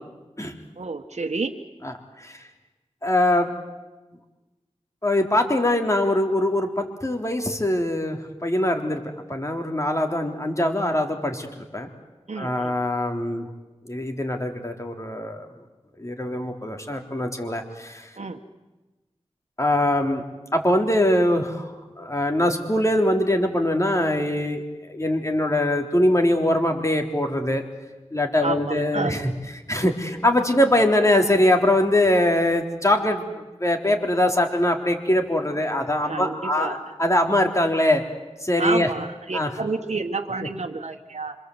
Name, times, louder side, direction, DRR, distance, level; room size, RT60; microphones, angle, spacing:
voice 1, 0.8-1.6 12.3-12.7 18.2-18.4 28.4-29.1 36.0-36.8 38.6-41.3, right 3 dB, 75° right, 2 dB, 1.4 m, -29 dB
voice 2, 3.0-3.5 5.0-9.0 9.3-11.5 11.7-11.9 12.4-13.5 13.9-15.5 16.0-18.0 19.6-20.2 20.5-21.7 22.0-24.6 24.9-27.7 28.1-29.2 29.7-33.3 33.6-38.0 38.4-38.9 39.3-39.5, left 1 dB, 25° left, 3 dB, 3.7 m, -22 dB
26.5 x 26.5 x 8.1 m, 1.1 s
wide cardioid pair, 60°, 12 cm